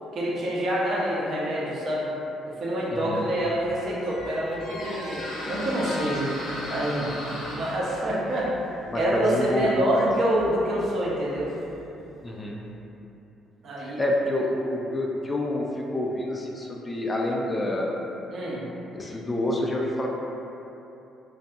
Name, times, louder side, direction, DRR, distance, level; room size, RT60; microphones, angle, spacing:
voice 1, 0.1-2.1 2.6-6.3 6.7-7.1 7.5-8.5 8.9-11.5 13.6-14.0 18.3-18.7, right 1 dB, 55° right, -5 dB, 0.6 m, -26 dB
voice 2, 2.9-3.3 8.9-10.1 12.2-12.6 13.8-18.0 18.9-20.1, left 1 dB, 25° left, -2 dB, 0.3 m, -28 dB
Squeak, 3.5-12.1, left 1 dB, 80° left, 0.5 m, -37 dB
2.6 x 2.2 x 2.6 m, 2.9 s
cardioid pair, 90°, 0 cm